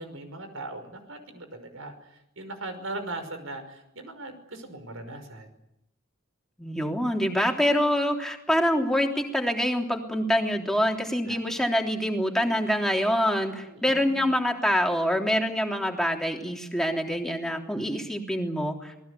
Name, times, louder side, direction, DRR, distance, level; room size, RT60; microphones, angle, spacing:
voice 1, 0.0-5.5 11.3-11.6 13.6-14.3, right 2 dB, 85° right, 9 dB, 5.5 m, -39 dB
voice 2, 6.6-18.9, equal, ahead, 1 dB, 3.4 m, -25 dB
27.0 x 20.0 x 8.5 m, 0.79 s
head